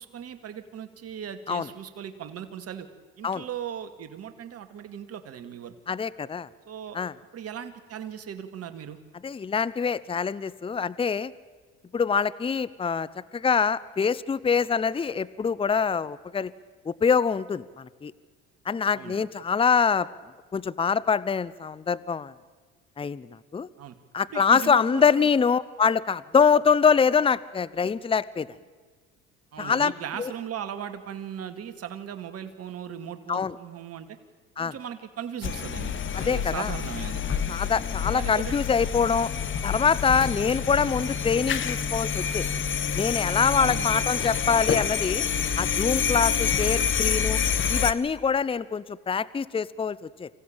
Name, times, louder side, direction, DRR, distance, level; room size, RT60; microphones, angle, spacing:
voice 1, 0.0-2.9 3.2-6.0 6.7-7.0 7.3-9.0 18.9-19.2 23.8-23.9 24.3-25.3 29.5-34.1 34.6-37.2 38.1-38.5 43.5-43.9, right 9 dB, 50° right, 9 dB, 2.1 m, -38 dB
voice 2, 5.9-6.5 6.9-7.1 9.2-11.3 11.9-13.1 13.3-16.5 16.9-18.1 18.7-20.1 20.5-22.3 23.0-23.7 24.1-28.5 29.6-29.9 30.2-30.3 33.3-33.6 34.6-34.7 36.1-36.7 37.5-39.3 39.6-42.4 43.0-45.2 45.6-47.4 47.7-50.3, left 6 dB, 20° left, 19 dB, 0.7 m, -24 dB
sound 1, 35.4-47.9, left 7 dB, 40° left, 1.4 m, -27 dB
25.5 x 15.5 x 8.9 m, 1.4 s
supercardioid pair, 80°, 30 cm